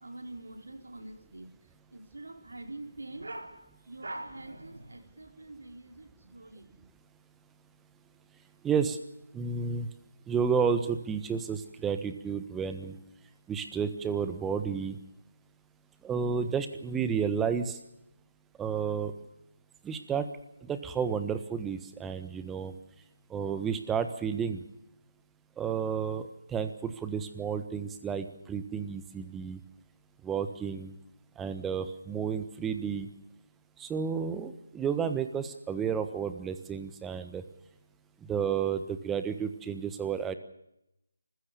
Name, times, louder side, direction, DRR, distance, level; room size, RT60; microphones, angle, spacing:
voice 1, 0.0-1.5 1.9-6.9, right 2 dB, 75° right, 5 dB, 4.7 m, -44 dB
voice 2, 8.6-9.0 9.3-9.9 10.3-13.0 13.5-15.0 16.0-17.8 18.6-19.1 19.8-20.3 20.7-22.7 23.3-24.6 25.6-29.6 30.2-30.9 31.4-33.1 33.8-37.4 38.3-40.3, right 6 dB, 10° right, 10 dB, 1.3 m, -31 dB
27.0 x 16.0 x 7.0 m, 0.85 s
figure-of-eight pair, 155°, 0 cm